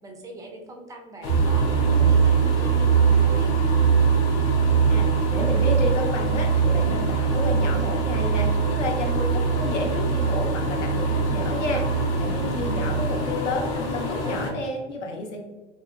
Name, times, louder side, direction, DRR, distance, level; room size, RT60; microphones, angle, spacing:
voice 1, 0.0-3.5 13.1-13.4 14.0-14.4, right 2 dB, 10° right, 2 dB, 0.3 m, -42 dB
sound 1, 1.2-14.5, left 2 dB, 35° left, 0.6 m, -29 dB
sound 2, 1.3-13.2, right 7 dB, 85° right, 0.5 m, -22 dB
voice 2, 4.9-15.4, left 2 dB, 70° left, 2 dB, 0.7 m, -31 dB
3.2 x 2.7 x 2.3 m, 1.2 s
figure-of-eight pair, 75°, 37 cm